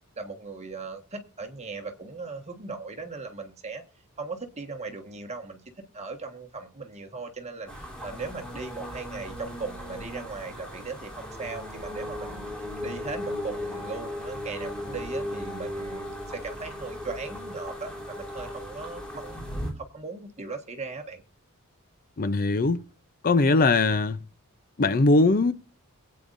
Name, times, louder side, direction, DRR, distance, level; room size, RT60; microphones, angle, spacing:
voice 1, 0.2-3.8 4.2-5.6 5.9-21.2, right 4 dB, 30° right, 1.5 m, -38 dB
sound 1, 7.7-19.7, left 1 dB, 5° left, 3.3 m, -37 dB
voice 2, 22.2-22.8 23.2-24.2 24.8-25.5, left 3 dB, 40° left, 0.5 m, -21 dB
22.0 x 8.6 x 2.6 m
head